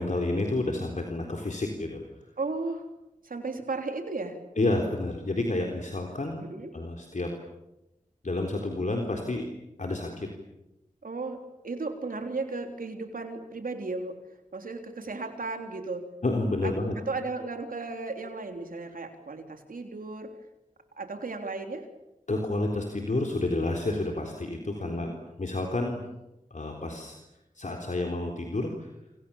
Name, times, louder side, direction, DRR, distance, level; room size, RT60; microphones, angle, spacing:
voice 1, 0.0-2.0 4.6-6.4 6.7-7.3 8.2-9.5 9.8-10.3 16.2-16.9 22.3-25.1 25.4-26.0 26.5-27.2 27.6-28.7, left 2 dB, 60° left, 2 dB, 3.9 m, -29 dB
voice 2, 2.4-2.8 3.2-4.4 6.4-6.8 11.0-11.4 11.6-14.2 14.5-16.1 16.6-20.3 21.0-21.9 24.8-25.2, right 3 dB, 90° right, 5 dB, 3.6 m, -35 dB
28.5 x 26.5 x 7.2 m, 0.93 s
wide cardioid pair, 45°, 14 cm